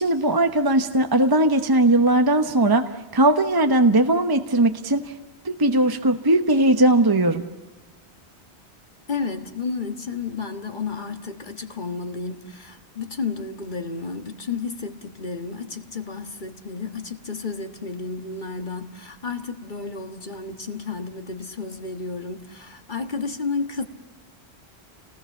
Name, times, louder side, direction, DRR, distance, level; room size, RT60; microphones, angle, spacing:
voice 1, 0.0-2.8 3.1-5.1 5.4-7.5, right 1 dB, 20° right, 7 dB, 1.0 m, -19 dB
voice 2, 9.1-23.8, left 4 dB, 45° left, 6 dB, 1.7 m, -32 dB
29.5 x 19.5 x 7.2 m, 1.1 s
omnidirectional pair, 1.1 m